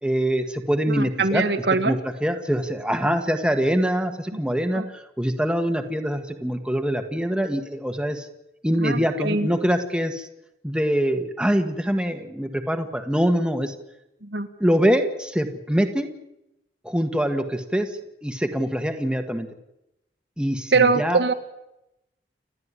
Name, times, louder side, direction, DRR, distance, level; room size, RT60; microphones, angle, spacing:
voice 1, 0.0-1.5 1.8-8.3 8.6-10.3 10.6-13.7 14.6-16.1 16.8-17.9 18.2-19.5 20.4-21.2, equal, 5° right, 6 dB, 1.6 m, -24 dB
voice 2, 0.9-2.0 4.7-4.8 8.8-9.5 14.2-14.5 20.7-21.3, right 4 dB, 75° right, 8 dB, 1.7 m, -22 dB
29.5 x 12.0 x 9.8 m, 0.88 s
head